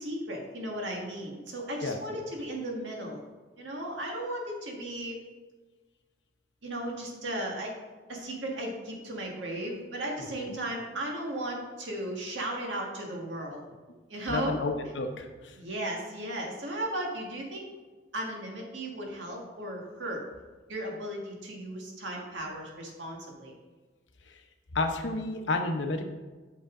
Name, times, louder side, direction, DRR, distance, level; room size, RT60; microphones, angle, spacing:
voice 1, 0.0-3.2 3.6-5.2 6.6-7.7 8.1-13.6 14.1-14.5 15.5-17.7 18.1-20.2 20.7-23.5, right 1 dB, 90° right, -1 dB, 1.7 m, -35 dB
voice 2, 1.8-2.2 14.3-15.5 24.7-26.0, left 2 dB, 85° left, 5 dB, 0.9 m, -31 dB
8.1 x 5.8 x 3.8 m, 1.3 s
head